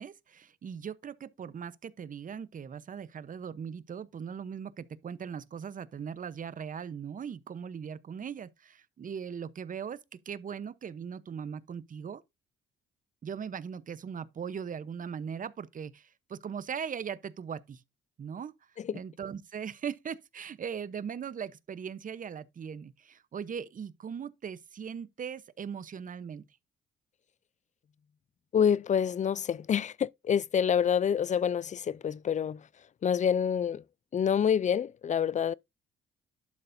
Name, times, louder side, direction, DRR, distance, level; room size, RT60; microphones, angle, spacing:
voice 1, 0.0-10.0 10.3-12.2 13.2-17.8 18.2-18.5 18.9-26.4, right 7 dB, 45° right, 0.9 m, -39 dB
voice 2, 28.5-32.6 33.0-33.8 34.1-35.5, left 8 dB, 40° left, 0.5 m, -27 dB
11.5 x 6.7 x 2.7 m
cardioid pair, 90°, 20 cm